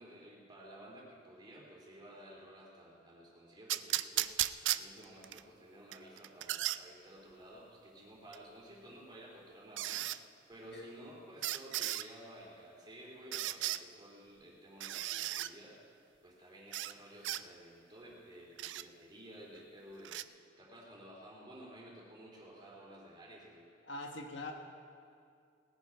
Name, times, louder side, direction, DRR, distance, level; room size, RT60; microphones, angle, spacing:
voice 1, 0.0-15.8 16.2-23.7, right 1 dB, 25° right, -3 dB, 3.3 m, -53 dB
sound 1, 3.7-5.4 5.9-6.8 8.3-8.4 9.8-10.2 11.4-12.1 13.3-13.8 14.8-15.5 16.7-16.9 17.2-17.4 18.6-18.8 20.0-20.2, right 14 dB, 80° right, 0.4 m, -35 dB
voice 2, 23.8-24.5, left 2 dB, 90° left, 2 dB, 1.5 m, -43 dB
19.0 x 9.3 x 5.7 m, 2.3 s
head